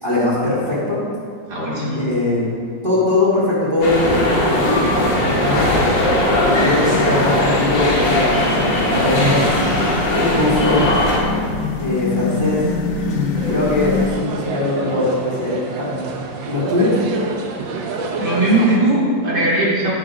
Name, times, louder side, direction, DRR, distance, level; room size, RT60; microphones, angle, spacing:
voice 1, 0.0-1.0 1.9-4.8 5.2-5.8 6.4-8.3 8.8-9.6 10.3-11.0 11.8-12.6 13.1-16.1 16.4-17.0, left 2 dB, 30° right, -10 dB, 3.3 m, -20 dB
voice 2, 1.5-2.0 18.2-19.9, right 1 dB, 65° right, -7 dB, 3.5 m, -18 dB
sound 1, 3.8-11.2, left 1 dB, 80° left, 2.6 m, -18 dB
sound 2, 5.3-14.1, left 4 dB, 55° left, 1.1 m, -26 dB
sound 3, 13.4-18.8, right 4 dB, 90° right, 1.7 m, -28 dB
16.0 x 7.2 x 3.9 m, 2.2 s
omnidirectional pair, 2.0 m